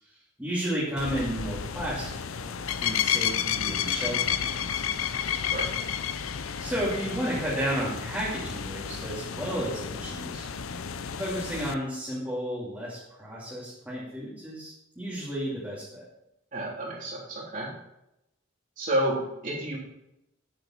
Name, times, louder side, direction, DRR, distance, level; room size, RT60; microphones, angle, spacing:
voice 1, 0.4-5.1 6.6-10.5 11.2-16.1, equal, 10° right, -9 dB, 2.6 m, -33 dB
sound 1, 1.0-11.7, left 8 dB, 85° left, 0.6 m, -31 dB
voice 2, 16.5-17.7 18.8-19.8, right 1 dB, 40° right, -4 dB, 3.5 m, -30 dB
9.2 x 8.6 x 4.4 m, 0.85 s
head